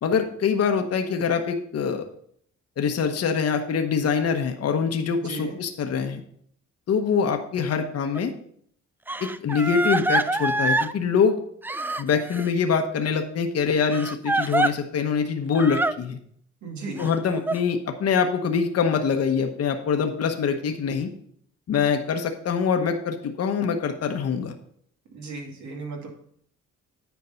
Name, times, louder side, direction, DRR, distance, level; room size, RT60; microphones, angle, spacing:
voice 1, 0.0-2.0 2.8-6.2 6.9-8.3 9.2-11.4 12.0-16.2 17.0-21.1 21.7-24.5, left 6 dB, 55° left, 5 dB, 1.1 m, -24 dB
voice 2, 5.2-5.5 16.6-17.1 25.1-26.1, right 3 dB, 70° right, 0 dB, 2.4 m, -36 dB
Crying sobbing, 8.1-8.2 9.1-10.9 11.6-12.5 13.9-14.7 15.5-15.9 17.0-17.6, right 2 dB, 5° right, 0.3 m, -25 dB
9.5 x 4.6 x 5.6 m, 0.65 s
cardioid pair, 90°, 30 cm